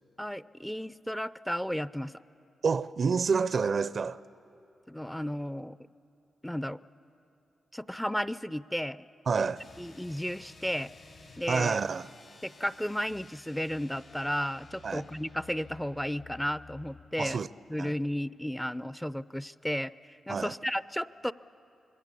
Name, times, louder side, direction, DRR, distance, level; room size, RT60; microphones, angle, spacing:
voice 1, 0.2-2.1 4.9-5.8 6.4-6.8 7.7-9.0 9.8-10.9 11.4-11.8 12.4-17.4 17.7-21.3, equal, 5° left, 0.5 m, -33 dB
voice 2, 2.6-4.2 9.3-9.6 11.5-12.1 14.8-15.0 17.2-17.5 17.8-17.9 20.3-20.5, right 5 dB, 60° right, 0.5 m, -28 dB
sound 1, 9.5-17.1, left 3 dB, 65° left, 6.6 m, -53 dB
26.5 x 20.5 x 8.3 m
cardioid pair, 50°, 0 cm